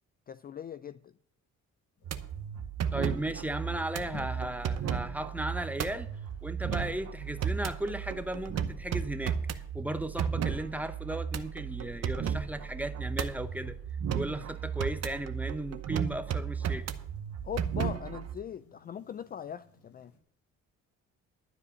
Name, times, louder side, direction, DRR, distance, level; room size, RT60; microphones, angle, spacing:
voice 1, 0.3-1.1 17.4-20.1, left 9 dB, 30° left, 0.4 m, -40 dB
sound 1, 2.0-20.2, left 4 dB, 65° left, 3.1 m, -58 dB
sound 2, 2.0-18.4, right 8 dB, 55° right, 0.9 m, -34 dB
voice 2, 2.9-6.1 6.4-13.8 14.1-16.9, right 1 dB, 5° right, 0.8 m, -36 dB
12.5 x 4.9 x 8.3 m
cardioid pair, 90°, 30 cm